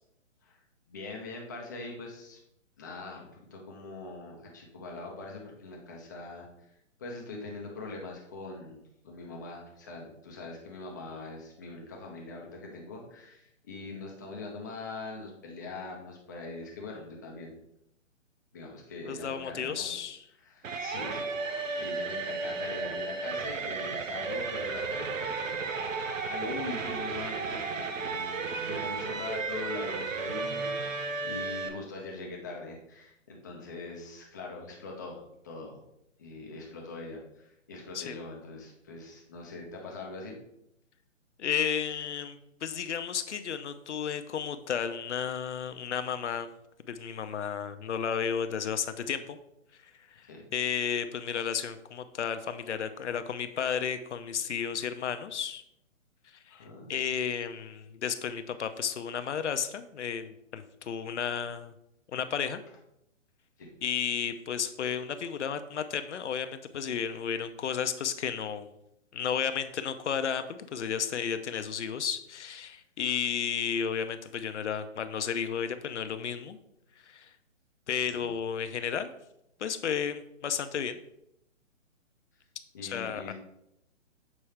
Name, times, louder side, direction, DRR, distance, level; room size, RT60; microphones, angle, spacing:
voice 1, 0.9-2.4 2.8-6.5 7.0-17.6 18.5-19.9 20.4-35.8 36.2-40.3 50.2-50.4 56.5-56.9 63.6-63.7 78.1-78.3 82.7-83.3, left 3 dB, 15° left, -1 dB, 0.5 m, -42 dB
voice 2, 19.0-20.2 37.9-38.2 41.4-46.5 46.9-49.4 50.2-50.3 50.5-55.6 56.5-61.7 62.1-62.6 63.8-68.7 69.1-76.6 77.1-77.3 77.9-79.1 79.6-81.0 82.8-83.3, left 7 dB, 65° left, 10 dB, 0.7 m, -33 dB
sound 1, 20.6-31.7, right 4 dB, 80° right, 1.0 m, -34 dB
7.3 x 4.5 x 3.3 m, 0.81 s
hypercardioid pair, 155°, 38 cm